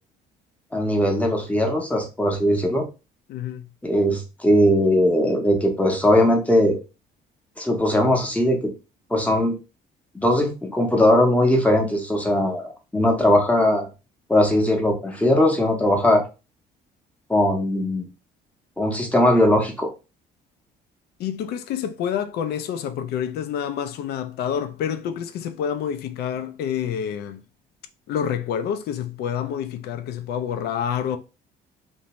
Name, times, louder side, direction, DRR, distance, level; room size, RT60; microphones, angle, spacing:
voice 1, 0.7-2.9 3.8-6.8 7.6-8.7 9.1-9.6 10.1-13.9 14.3-16.2 17.3-18.1 18.8-19.9, left 1 dB, 10° left, 0.7 m, -19 dB
voice 2, 3.3-3.7 21.2-27.4 28.1-31.2, left 8 dB, 70° left, 0.4 m, -28 dB
2.6 x 2.1 x 2.9 m
cardioid pair, 110°, 17 cm